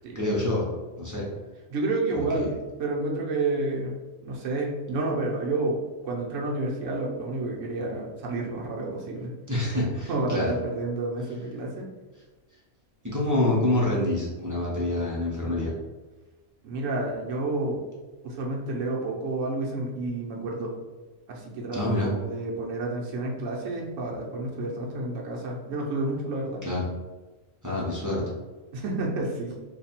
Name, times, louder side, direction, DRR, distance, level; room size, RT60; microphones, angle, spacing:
voice 1, 0.1-0.7 1.0-1.3 2.1-2.5 9.5-10.5 13.0-15.7 21.7-22.1 26.6-26.8 27.6-28.2, left 1 dB, 20° right, -5 dB, 0.5 m, -26 dB
voice 2, 1.7-2.5 2.8-4.0 4.2-5.8 6.0-9.3 9.7-11.8 16.6-17.8 18.2-20.7 21.3-26.6 28.7-29.5, right 2 dB, 65° right, -2 dB, 1.1 m, -30 dB
3.3 x 2.3 x 4.2 m, 1.2 s
omnidirectional pair, 1.5 m